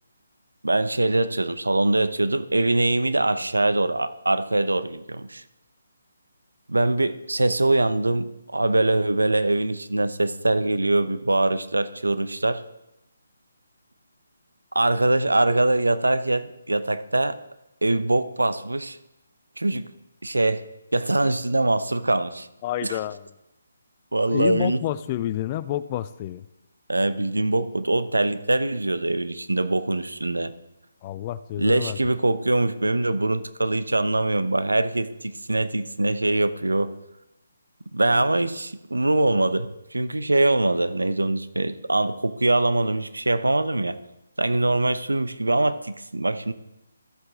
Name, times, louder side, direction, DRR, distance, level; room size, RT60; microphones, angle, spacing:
voice 1, 0.6-5.4 6.7-12.6 14.7-17.4 17.8-19.0 19.6-19.9 20.2-20.6 20.9-22.5 22.8-23.0 24.1-24.8 26.9-30.5 31.6-36.9 37.9-44.0 44.4-46.5, right 2 dB, 85° right, 13 dB, 0.9 m, -23 dB
voice 2, 22.6-23.3 24.3-26.5 31.0-32.0, left 12 dB, 30° left, 15 dB, 0.4 m, -29 dB
14.0 x 7.8 x 3.8 m, 0.91 s
figure-of-eight pair, 150°, 0 cm